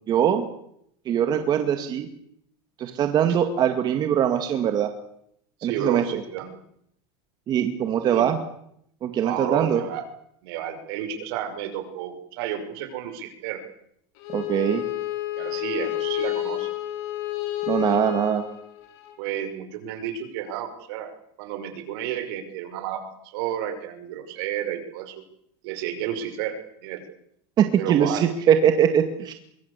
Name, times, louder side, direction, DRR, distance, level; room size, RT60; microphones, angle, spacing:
voice 1, 0.1-0.5 1.1-2.1 2.8-4.9 5.6-6.0 7.5-8.4 9.0-9.8 14.3-14.8 17.7-18.4 27.6-29.3, right 9 dB, 30° right, 7 dB, 2.1 m, -22 dB
voice 2, 5.6-6.6 8.0-8.3 9.2-10.0 10.4-13.6 15.4-16.7 19.2-21.1 21.4-25.2 25.6-27.0 27.8-28.5, right 10 dB, 65° right, 8 dB, 5.9 m, -31 dB
Bowed string instrument, 14.2-19.1, left 16 dB, 55° left, 6.9 m, -30 dB
24.5 x 22.5 x 8.3 m, 0.73 s
supercardioid pair, 155°, 14 cm